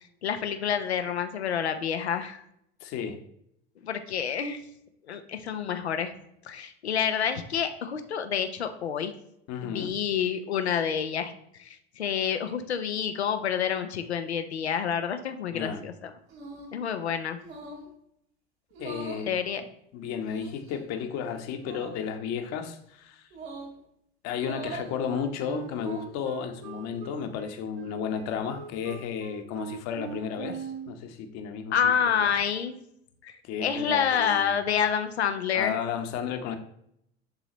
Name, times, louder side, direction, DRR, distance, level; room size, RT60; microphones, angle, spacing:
voice 1, 0.2-2.4 3.8-4.6 5.1-6.1 6.4-9.2 9.6-11.3 11.6-16.1 16.7-17.4 19.3-19.6 31.7-32.8 33.2-35.8, left 8 dB, 85° left, 9 dB, 0.8 m, -28 dB
voice 2, 2.8-3.2 9.5-9.9 15.5-15.8 18.8-19.4 19.9-23.3 24.2-31.8 32.2-32.3 33.4-34.5 35.5-36.6, left 7 dB, 55° left, 6 dB, 1.2 m, -33 dB
sound 1, 16.3-16.8 17.4-17.9 18.7-19.3 20.2-20.8 21.6-22.0 23.3-23.8 24.4-24.9 25.6-26.2, right 2 dB, 75° right, 2.3 m, -41 dB
Wind instrument woodwind instrument, 25.1-30.9, right 7 dB, 60° right, 1.1 m, -41 dB
11.0 x 4.0 x 3.0 m, 0.73 s
hypercardioid pair, 75°, 32 cm